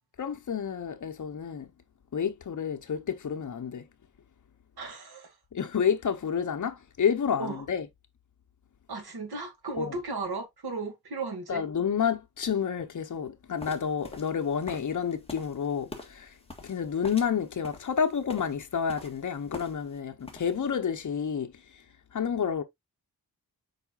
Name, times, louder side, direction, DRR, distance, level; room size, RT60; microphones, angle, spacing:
voice 1, 0.2-1.7 2.1-3.9 5.5-7.9 9.8-10.0 11.5-22.6, left 7 dB, 50° left, 1.0 m, -30 dB
voice 2, 4.8-5.3 7.4-7.6 8.9-11.6, right 3 dB, 80° right, 2.3 m, -35 dB
sound 1, 13.6-20.0 20.2-20.7, left 2 dB, 15° left, 1.6 m, -46 dB
7.8 x 4.9 x 2.5 m
wide cardioid pair, 160°, 38 cm